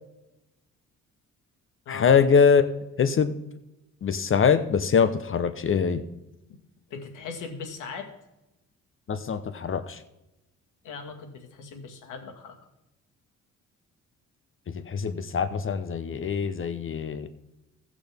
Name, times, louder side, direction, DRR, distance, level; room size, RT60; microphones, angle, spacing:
voice 1, 1.9-2.6 3.0-3.3 4.0-6.0 9.1-10.0 14.9-17.3, left 6 dB, 45° left, 11 dB, 0.8 m, -23 dB
voice 2, 6.9-8.1 10.8-12.6, left 5 dB, 85° left, 3 dB, 1.9 m, -39 dB
17.5 x 6.2 x 3.5 m, 0.94 s
cardioid pair, 90°, 30 cm